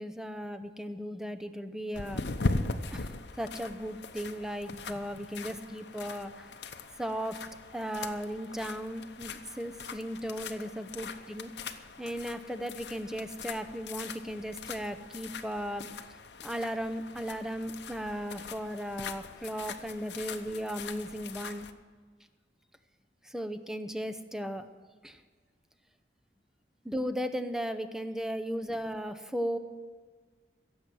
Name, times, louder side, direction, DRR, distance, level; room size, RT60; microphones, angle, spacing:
voice 1, 0.0-2.2 2.9-6.5 7.0-7.4 7.7-11.5 12.0-15.9 16.4-21.7 23.2-24.7 25.0-25.2 26.8-29.6, equal, 5° right, 8 dB, 0.7 m, -36 dB
sound 1, 1.9-21.7, left 3 dB, 65° left, 0.8 m, -40 dB
16.5 x 7.5 x 7.8 m, 1.5 s
head